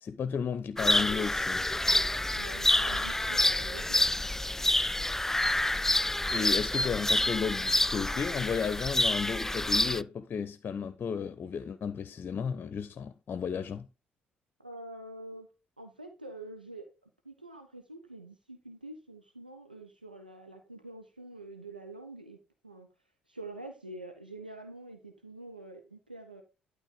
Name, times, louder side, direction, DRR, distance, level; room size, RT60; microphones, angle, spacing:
voice 1, 0.0-1.7 6.3-13.9, left 6 dB, 45° left, 0.7 m, -33 dB
sound 1, 0.8-10.0, left 1 dB, 10° left, 0.3 m, -28 dB
voice 2, 2.3-4.0 14.6-15.5 15.8-22.4 22.6-22.9 23.3-26.4, right 2 dB, 90° right, 0.9 m, -46 dB
11.5 x 4.0 x 5.0 m
figure-of-eight pair, 45°, 5 cm